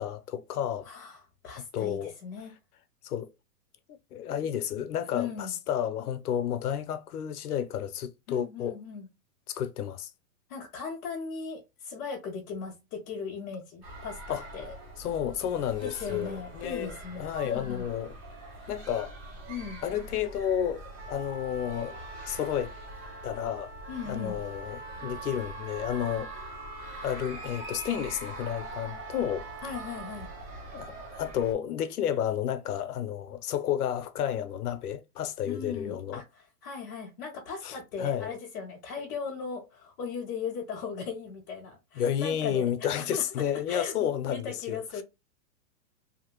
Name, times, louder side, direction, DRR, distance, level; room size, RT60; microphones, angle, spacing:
voice 1, 0.0-0.9 1.7-2.1 3.0-3.3 4.1-8.7 9.5-10.1 14.3-14.4 15.0-18.1 18.7-19.1 19.8-21.9 22.2-22.7 23.2-23.7 24.0-26.3 27.0-29.5 30.7-36.2 37.6-38.3 42.0-45.0, left 9 dB, 65° left, 0.6 m, -31 dB
voice 2, 0.8-2.5 5.1-5.5 8.3-9.1 10.5-14.7 15.8-17.9 19.5-19.8 23.9-24.4 29.6-30.3 35.5-43.2 43.7-45.0, left 6 dB, 10° left, 0.5 m, -38 dB
sound 1, 13.8-31.5, right 2 dB, 20° right, 0.9 m, -44 dB
Trumpet, 21.0-30.5, right 3 dB, 45° right, 1.0 m, -46 dB
2.8 x 2.5 x 2.9 m
hypercardioid pair, 165°, 49 cm